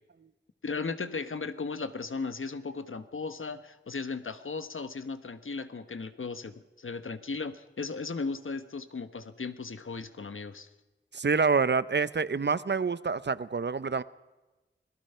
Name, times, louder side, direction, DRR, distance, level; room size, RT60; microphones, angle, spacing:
voice 1, 0.6-10.7, left 4 dB, 85° left, 1.2 m, -36 dB
voice 2, 11.1-14.0, right 5 dB, 60° right, 0.8 m, -27 dB
26.5 x 18.5 x 5.7 m
wide cardioid pair, 55°, 20 cm